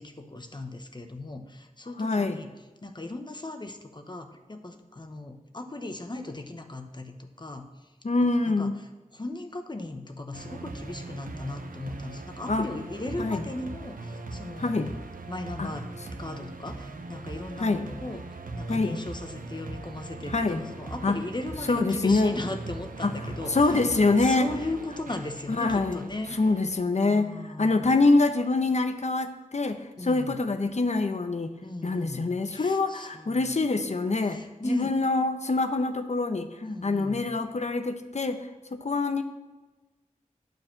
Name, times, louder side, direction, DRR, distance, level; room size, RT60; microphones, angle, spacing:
voice 1, 0.0-2.5 2.8-7.9 8.5-8.9 9.1-14.8 15.3-23.8 24.2-26.4 27.0-28.0 30.0-30.4 31.6-33.6 34.2-35.0 36.6-37.2, left 2 dB, 35° left, 6 dB, 0.9 m, -37 dB
voice 2, 2.0-2.4 8.0-8.8 12.5-12.7 13.2-13.4 14.6-14.9 15.6-15.7 17.6-17.9 18.7-19.0 20.3-20.6 21.0-21.2 21.7-22.3 23.0-23.1 23.5-24.5 25.6-26.1 26.4-27.3 27.6-31.5 31.8-34.4 34.7-36.5 36.8-38.4 38.7-39.2, left 3 dB, 55° left, 8 dB, 0.8 m, -25 dB
sound 1, 10.3-26.8, right 2 dB, 90° right, 0.8 m, -40 dB
9.2 x 4.8 x 7.2 m, 1.2 s
wide cardioid pair, 65°, 14 cm